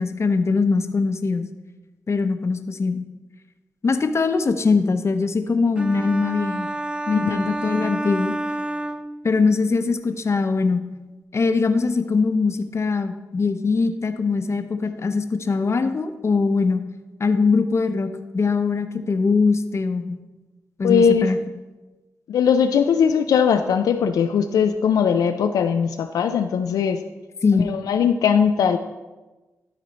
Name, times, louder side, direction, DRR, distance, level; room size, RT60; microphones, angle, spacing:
voice 1, 0.0-1.4 2.1-3.0 3.8-6.7 7.1-8.3 9.2-10.8 11.3-16.8 17.2-20.2 20.8-21.4 27.4-27.7, left 4 dB, 45° left, 8 dB, 0.7 m, -21 dB
sound 1, 5.8-9.6, right 1 dB, 15° right, 0.4 m, -29 dB
voice 2, 7.1-7.5 20.8-21.3 22.3-27.0 27.5-28.8, left 7 dB, 85° left, 6 dB, 0.3 m, -20 dB
12.5 x 4.2 x 4.1 m, 1.2 s
cardioid pair, 60°, 6 cm